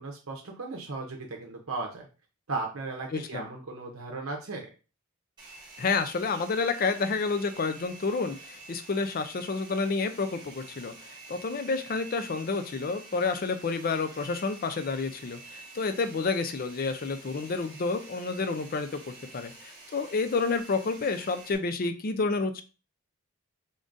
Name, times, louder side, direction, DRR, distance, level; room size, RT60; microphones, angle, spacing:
voice 1, 0.0-2.1 2.5-4.7, right 3 dB, 65° right, 1 dB, 0.7 m, -36 dB
voice 2, 3.1-3.5 5.8-22.6, left 4 dB, 40° left, 9 dB, 0.4 m, -30 dB
Domestic sounds home sounds, 5.4-21.6, right 3 dB, 20° right, 1.0 m, -49 dB
3.7 x 3.7 x 2.5 m, 0.33 s
head